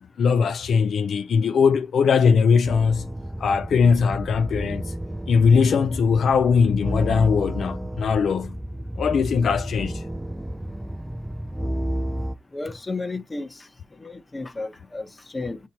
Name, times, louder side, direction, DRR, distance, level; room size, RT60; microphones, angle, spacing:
voice 1, 0.2-3.0 3.4-4.9 5.3-8.6 9.0-10.0, left 6 dB, 75° left, 0.3 m, -20 dB
sound 1, 2.6-12.3, right 1 dB, 10° right, 0.4 m, -31 dB
voice 2, 12.5-13.7 14.0-15.7, left 3 dB, 25° left, 0.8 m, -33 dB
6.2 x 2.8 x 2.9 m
cardioid pair, 75°, 0 cm